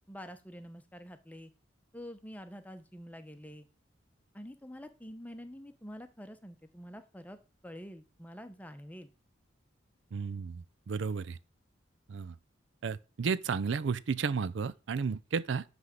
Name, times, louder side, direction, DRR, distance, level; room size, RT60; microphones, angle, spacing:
voice 1, 0.1-1.5 1.9-3.7 4.3-7.4 7.6-9.1, equal, 10° left, 0.8 m, -47 dB
voice 2, 10.1-11.4 12.1-12.3 12.8-15.6, right 5 dB, 70° right, 0.4 m, -33 dB
9.6 x 3.4 x 6.5 m
head